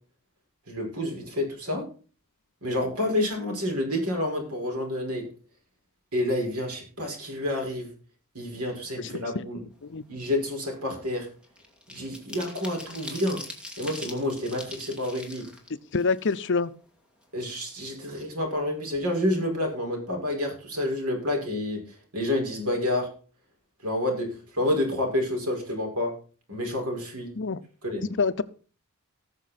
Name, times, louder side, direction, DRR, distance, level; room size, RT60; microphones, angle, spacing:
voice 1, 0.7-1.9 2.6-5.3 6.1-7.9 8.3-9.6 10.1-11.3 11.9-13.4 13.8-15.5 17.3-23.1 23.8-24.3 24.5-26.1 26.5-27.3 27.8-28.0, left 1 dB, 85° right, 2 dB, 5.3 m, -29 dB
voice 2, 9.0-9.5 9.8-10.0 15.9-16.7 27.4-27.6 28.2-28.4, left 4 dB, 55° left, 13 dB, 0.7 m, -26 dB
sound 1, 9.8-10.1 10.4-16.8 17.2-17.3 17.6-18.6 18.9-19.1 19.4-19.7, left 1 dB, 5° right, 2.3 m, -43 dB
19.0 x 6.6 x 4.2 m, 0.38 s
head